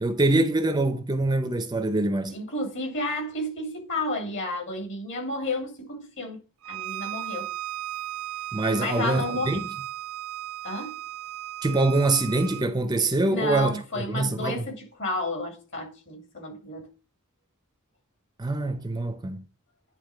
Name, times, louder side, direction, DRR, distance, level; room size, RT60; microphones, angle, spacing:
voice 1, 0.0-2.4 8.5-9.6 11.6-14.6 18.4-19.4, right 2 dB, 20° right, 0.7 m, -24 dB
voice 2, 2.3-6.4 6.7-7.5 8.8-9.6 10.6-10.9 13.3-16.9, left 1 dB, 60° left, 3.2 m, -31 dB
Bowed string instrument, 6.6-12.7, right 14 dB, 75° right, 0.5 m, -36 dB
10.0 x 3.7 x 5.0 m
head